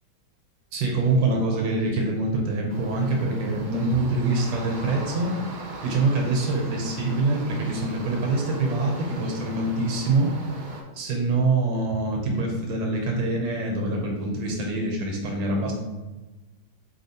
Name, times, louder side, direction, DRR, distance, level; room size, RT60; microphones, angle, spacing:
voice 1, 0.7-5.3 5.8-10.3 10.9-15.7, right 2 dB, 85° right, 0 dB, 1.6 m, -25 dB
sound 1, 2.7-10.8, right 2 dB, 70° right, 1.1 m, -39 dB
4.1 x 3.6 x 2.8 m, 1.1 s
omnidirectional pair, 2.0 m